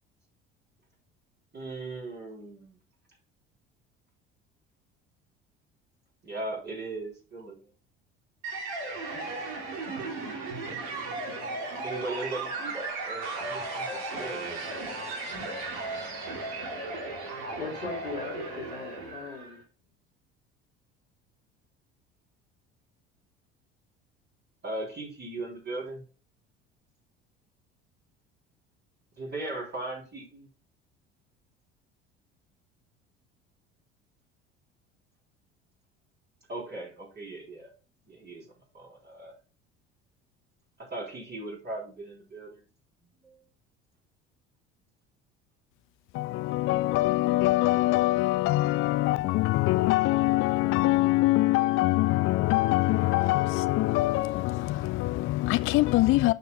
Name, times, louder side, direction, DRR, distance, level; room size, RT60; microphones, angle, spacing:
voice 1, 1.5-2.7 6.2-7.6 11.8-14.5 24.6-26.0 29.2-30.5 36.5-37.7 38.1-38.5 38.7-39.3 40.9-42.6 43.2-43.4, right 2 dB, 30° right, 3.6 m, -38 dB
sound 1, 8.4-19.6, right 3 dB, 65° right, 2.6 m, -35 dB
voice 2, 17.6-19.6, left 5 dB, 85° left, 1.6 m, -39 dB
voice 3, 46.1-56.3, left 18 dB, 40° left, 0.4 m, -24 dB
12.0 x 5.2 x 2.3 m
figure-of-eight pair, 60°, 32 cm